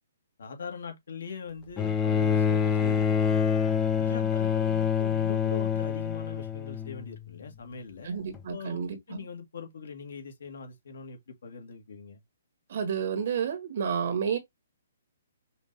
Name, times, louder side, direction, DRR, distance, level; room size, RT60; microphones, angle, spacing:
voice 1, 0.4-3.4 4.0-8.2 8.5-12.2, left 5 dB, 70° left, 1.6 m, -41 dB
Bowed string instrument, 1.8-7.2 8.3-8.4, left 7 dB, 15° left, 0.5 m, -26 dB
voice 2, 8.0-9.2 12.7-14.4, right 7 dB, 50° right, 1.4 m, -30 dB
5.1 x 2.6 x 3.2 m
hypercardioid pair, 170°, 0 cm